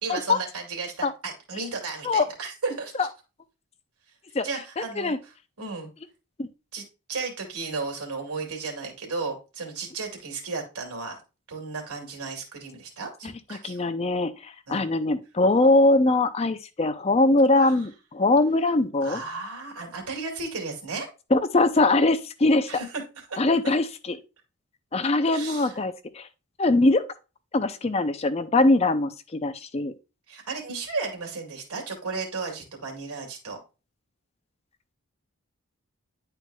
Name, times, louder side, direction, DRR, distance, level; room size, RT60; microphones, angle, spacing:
voice 1, 0.0-3.1 4.4-5.9 6.7-11.2 11.5-13.9 14.7-14.8 17.6-17.8 19.0-21.1 22.7-23.4 25.3-25.8 30.3-33.6, right 4 dB, 90° right, 2.3 m, -34 dB
voice 2, 4.8-5.2 6.4-6.5 13.5-19.2 21.3-22.7 23.4-24.2 24.9-26.3 26.6-27.1 27.5-29.1 29.4-29.9, left 2 dB, 30° left, 0.5 m, -22 dB
10.5 x 4.5 x 2.3 m
head